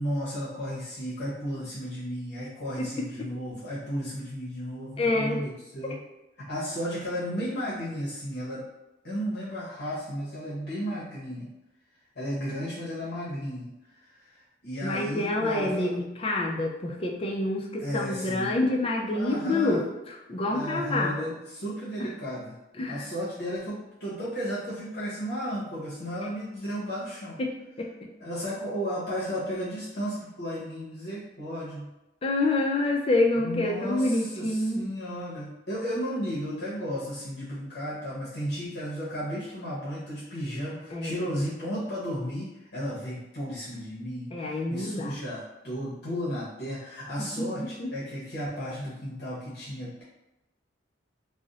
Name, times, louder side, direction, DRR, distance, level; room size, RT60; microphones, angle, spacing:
voice 1, 0.0-6.0 6.4-8.7 9.0-11.5 12.2-16.0 17.8-18.5 19.1-19.9 20.5-22.6 22.9-27.4 28.2-31.9 33.4-50.0, equal, 60° left, -8 dB, 0.8 m, -34 dB
voice 2, 5.0-5.4 5.9-6.0 14.8-19.9 20.3-21.3 22.0-22.1 22.8-23.1 27.4-27.9 32.2-34.8 40.9-41.2 44.3-45.2 47.4-47.9, left 2 dB, 30° left, 0 dB, 0.4 m, -27 dB
2.5 x 2.0 x 3.9 m, 0.94 s
head